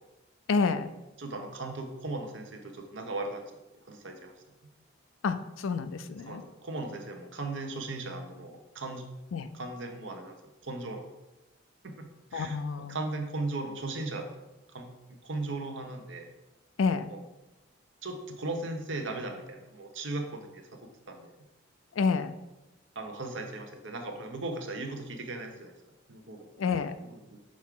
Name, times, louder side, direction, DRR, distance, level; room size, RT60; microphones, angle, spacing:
voice 1, 0.5-0.9 5.2-6.4 9.3-9.5 12.3-13.0 16.8-17.1 21.9-22.3 26.6-27.0, left 4 dB, 85° left, 12 dB, 0.4 m, -29 dB
voice 2, 1.2-3.4 3.8-4.3 6.3-9.0 9.5-10.4 10.6-11.0 11.8-12.6 12.9-14.3 14.7-16.3 17.1-17.2 18.0-20.7 21.1-21.3 22.9-25.7 26.1-26.5 27.1-27.4, right 2 dB, 70° right, 4 dB, 0.9 m, -37 dB
6.3 x 4.6 x 3.7 m, 1.0 s
head